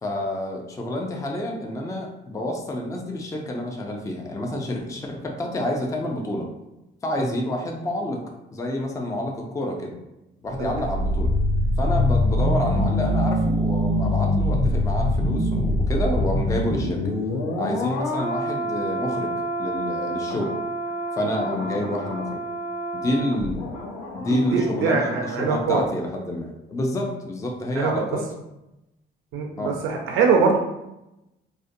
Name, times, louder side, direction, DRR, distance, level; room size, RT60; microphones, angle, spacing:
voice 1, 0.0-6.5 7.0-8.2 8.5-10.0 10.4-11.3 11.8-17.1 17.6-20.6 21.2-22.4 22.9-23.6 24.1-28.2 29.6-29.8, left 1 dB, 15° left, 1 dB, 0.4 m, -28 dB
sound 1, 10.5-25.4 25.7-25.9, left 1 dB, 90° left, 0.6 m, -25 dB
voice 2, 24.2-25.8 27.7-27.9 29.3-30.6, right 5 dB, 85° right, 0 dB, 0.4 m, -22 dB
2.5 x 2.1 x 2.6 m, 0.93 s
cardioid pair, 90°, 20 cm